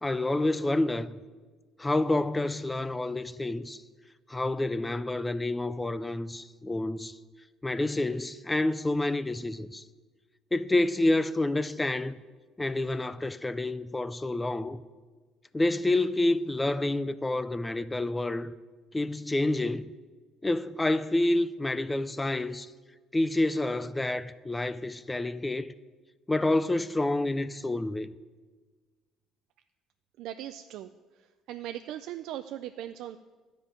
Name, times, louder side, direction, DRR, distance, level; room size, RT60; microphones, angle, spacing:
voice 1, 0.0-1.1 1.8-3.8 4.3-7.2 7.6-9.8 10.5-12.2 12.6-14.8 15.5-18.5 18.9-19.9 20.4-22.7 23.1-25.7 26.3-28.1, left 2 dB, 10° left, 0.4 m, -28 dB
voice 2, 30.2-30.9 31.5-33.2, right 12 dB, 70° right, 0.4 m, -38 dB
12.0 x 5.3 x 8.7 m
cardioid pair, 140°, 0 cm